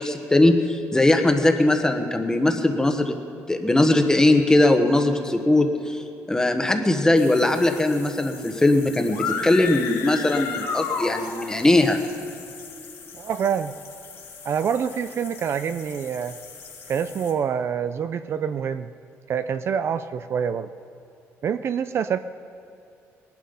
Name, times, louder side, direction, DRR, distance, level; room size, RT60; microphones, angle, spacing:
voice 1, 0.0-3.2 3.5-12.0, left 2 dB, 10° left, 5 dB, 1.3 m, -20 dB
sound 1, 7.1-17.3, left 6 dB, 50° left, 2.2 m, -44 dB
sound 2, 9.1-11.7, left 5 dB, 80° left, 1.5 m, -30 dB
voice 2, 13.1-13.8 14.4-16.4 16.9-18.9 19.3-20.7 21.4-22.2, right 7 dB, 50° right, 11 dB, 0.5 m, -26 dB
19.5 x 11.5 x 5.3 m, 2.7 s
cardioid pair, 115°, 6 cm